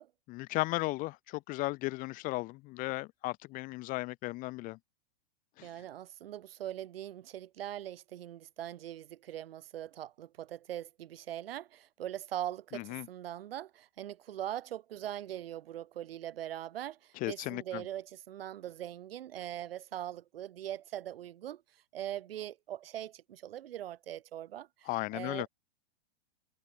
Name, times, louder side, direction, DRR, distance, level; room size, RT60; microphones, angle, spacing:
voice 1, 0.3-4.8 5.6-5.7 12.7-13.1 17.2-17.8 24.9-25.5, left 21 dB, 25° left, 1.1 m, -35 dB
voice 2, 5.6-25.5, right 12 dB, 70° right, 7.4 m, -41 dB
supercardioid pair, 155°, 30 cm